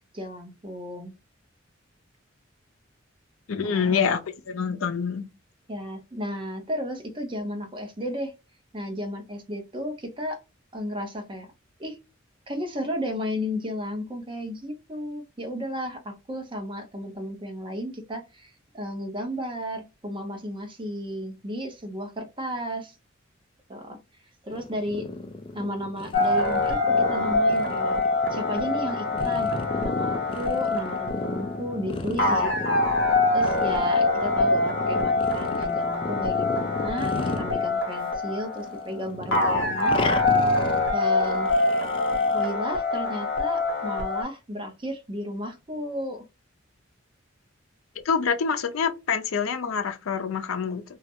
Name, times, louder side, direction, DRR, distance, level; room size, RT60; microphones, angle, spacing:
voice 1, 0.1-1.1 3.6-4.0 5.7-8.3 8.7-10.4 10.7-11.5 11.8-12.0 12.5-23.0 23.7-24.0 24.4-25.1 25.5-28.0 28.3-29.5 29.8-32.8 33.3-40.0 40.9-41.5 42.3-46.2, equal, 25° right, 0.6 m, -34 dB
voice 2, 3.5-4.2 4.5-5.3 48.0-50.8, left 6 dB, 90° left, 0.5 m, -26 dB
sound 1, 24.5-38.3 38.6-42.5, left 2 dB, 25° left, 0.3 m, -34 dB
sound 2, 26.1-44.2, left 3 dB, 60° left, 0.8 m, -25 dB
2.3 x 2.1 x 2.8 m
head